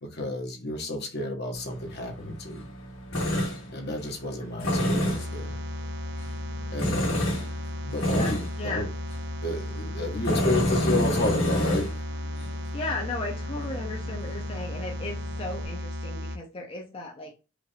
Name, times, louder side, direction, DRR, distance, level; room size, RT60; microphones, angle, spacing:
voice 1, 0.0-2.7 3.7-5.6 6.7-7.3 7.8-8.9 9.4-12.0, left 1 dB, 55° left, 1.3 m, -31 dB
Tools, 1.6-15.7, left 1 dB, 80° left, 2.0 m, -31 dB
sound 1, 5.1-16.4, left 1 dB, 60° right, 0.6 m, -35 dB
voice 2, 8.0-8.9 12.7-17.3, left 2 dB, 30° left, 0.7 m, -36 dB
4.8 x 2.5 x 3.4 m
head